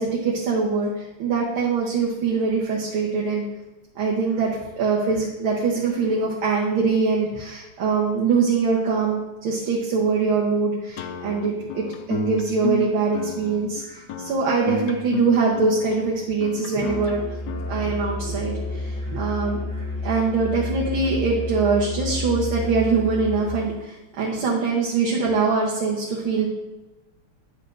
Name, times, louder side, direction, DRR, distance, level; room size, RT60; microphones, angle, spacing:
voice 1, 0.0-3.5 4.0-17.2 17.7-26.5, right 4 dB, 70° right, -4 dB, 1.9 m, -23 dB
sound 1, 11.0-18.4, left 6 dB, 75° left, 1.0 m, -32 dB
Musical instrument, 16.8-23.7, left 2 dB, 10° left, 1.1 m, -30 dB
10.5 x 6.9 x 2.6 m, 1.1 s
omnidirectional pair, 2.4 m